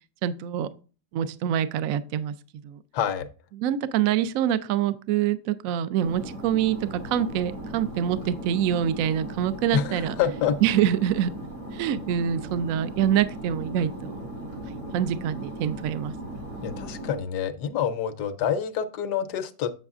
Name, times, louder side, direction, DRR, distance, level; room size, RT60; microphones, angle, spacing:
voice 1, 0.2-0.7 1.1-2.3 2.6-2.8 3.6-10.1 10.6-11.3 11.7-14.2 14.7-16.1, right 10 dB, 70° right, 0.8 m, -25 dB
voice 2, 2.9-3.3 9.7-10.6 16.6-19.7, left 8 dB, 75° left, 1.2 m, -27 dB
sound 1, 6.0-17.2, right 1 dB, 85° right, 4.1 m, -38 dB
7.6 x 7.1 x 2.4 m
omnidirectional pair, 1.9 m